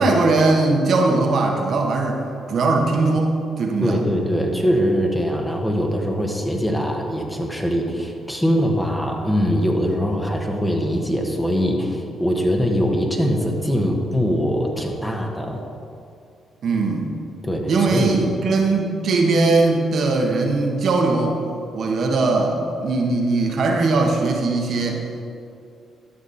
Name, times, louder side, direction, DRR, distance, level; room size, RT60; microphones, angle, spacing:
voice 1, 0.0-2.2 2.5-4.0 4.5-4.6 16.6-17.1 17.7-21.4 21.7-25.0, right 3 dB, 65° right, 1 dB, 1.2 m, -20 dB
voice 2, 3.8-15.6 17.4-18.3, equal, 10° left, 1 dB, 1.5 m, -22 dB
12.5 x 6.3 x 4.2 m, 2.5 s
supercardioid pair, 65°, 0 cm